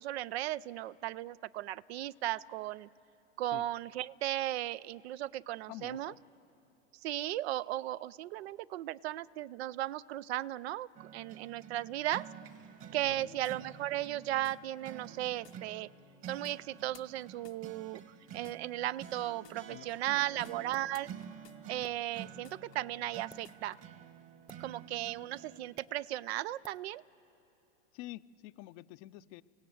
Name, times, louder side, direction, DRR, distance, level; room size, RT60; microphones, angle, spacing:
voice 1, 0.0-2.9 3.4-6.1 7.0-12.3 12.9-15.9 16.2-18.0 18.3-21.1 21.7-23.8 24.6-27.0, right 14 dB, 70° right, 19 dB, 0.5 m, -36 dB
voice 2, 5.7-6.2 13.1-13.4 19.7-20.4 27.9-29.4, left 17 dB, 45° left, 15 dB, 0.6 m, -48 dB
sound 1, 10.9-25.6, right 8 dB, 40° right, 1.6 m, -50 dB
sound 2, 13.0-14.0 14.4-14.6 15.4-15.6 16.4-16.6 16.9-18.0 18.4-18.6 19.4-19.6 20.4-20.6 20.9-22.8 23.2-23.8, left 14 dB, 75° left, 0.9 m, -60 dB
sound 3, 20.7-21.0 21.8-22.0 23.2-23.4 24.5-24.7 25.8-25.9 26.6-26.8, right 1 dB, 5° right, 0.8 m, -53 dB
26.5 x 16.5 x 7.9 m, 3.0 s
hypercardioid pair, 95°, 33 cm